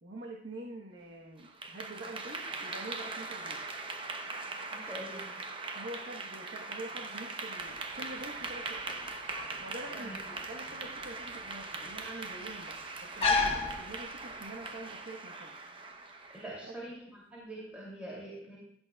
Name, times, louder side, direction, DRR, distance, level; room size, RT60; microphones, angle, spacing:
voice 1, 0.0-3.7 5.7-8.9 9.6-15.5 16.5-16.7, right 1 dB, 75° right, -1 dB, 1.2 m, -46 dB
Clapping / Applause, 1.4-16.7, right 3 dB, 30° right, 0.9 m, -41 dB
voice 2, 4.7-5.3 9.9-10.2 16.3-16.9 17.3-18.6, right 1 dB, 10° right, -6 dB, 2.8 m, -43 dB
sound 1, 7.6-14.6, left 4 dB, 30° left, 1.4 m, -35 dB
16.5 x 11.0 x 2.4 m, 0.74 s
head